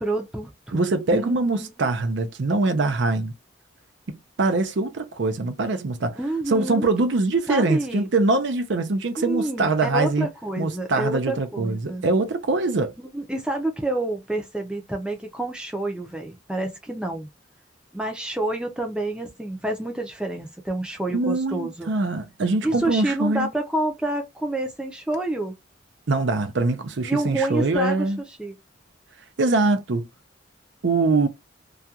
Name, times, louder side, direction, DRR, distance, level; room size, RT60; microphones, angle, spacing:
voice 1, 0.0-1.7 6.1-6.9 7.5-8.1 9.2-12.0 13.0-17.3 17.9-21.9 22.6-25.6 27.0-28.1 28.4-28.6, right 2 dB, 5° right, 0.5 m, -28 dB
voice 2, 0.7-3.3 4.1-6.2 6.5-10.3 10.6-12.9 21.1-23.5 26.1-28.2 29.4-30.1 30.8-31.3, right 3 dB, 70° right, 0.5 m, -23 dB
2.4 x 2.3 x 2.7 m
head